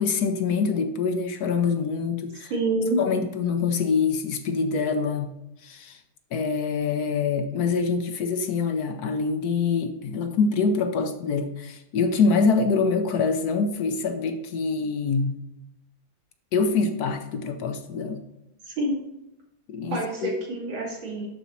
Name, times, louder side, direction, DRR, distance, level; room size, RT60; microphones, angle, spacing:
voice 1, 0.0-2.5 3.0-5.3 5.6-6.0 6.3-15.4 16.5-18.2 19.7-20.3, left 5 dB, 65° left, 7 dB, 1.0 m, -25 dB
voice 2, 2.5-3.0 18.7-19.0 19.9-21.3, right 2 dB, 70° right, -4 dB, 3.1 m, -27 dB
12.0 x 4.4 x 4.1 m, 0.88 s
omnidirectional pair, 2.2 m